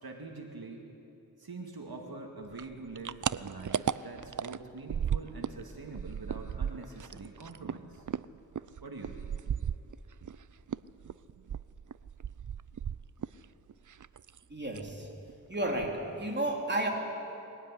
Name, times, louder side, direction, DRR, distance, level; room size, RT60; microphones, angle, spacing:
voice 1, 0.0-0.8 1.4-8.0 8.6-9.4, right 3 dB, 80° right, 2 dB, 2.2 m, -44 dB
sound 1, 2.5-5.6 5.9-10.4 10.7-13.4 13.7-14.4 14.7-15.0 15.3-15.4 15.7-16.2, right 8 dB, 55° right, 0.5 m, -35 dB
voice 2, 14.5-15.1 15.5-16.9, right 1 dB, 30° right, 0 dB, 3.5 m, -32 dB
21.5 x 18.0 x 9.8 m, 2.8 s
wide cardioid pair, 55°, 36 cm